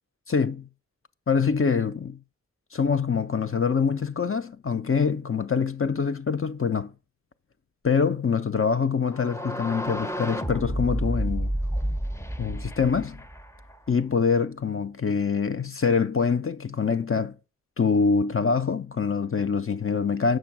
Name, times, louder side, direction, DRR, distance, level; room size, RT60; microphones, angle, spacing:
voice 1, 0.3-0.7 1.3-2.2 2.7-6.9 7.8-11.5 12.4-13.2 13.9-17.4 17.8-20.4, left 5 dB, 45° left, 0.5 m, -25 dB
sound 1, 9.1-13.9, equal, 10° left, 0.7 m, -30 dB
7.8 x 6.1 x 6.0 m
wide cardioid pair, 55°, 29 cm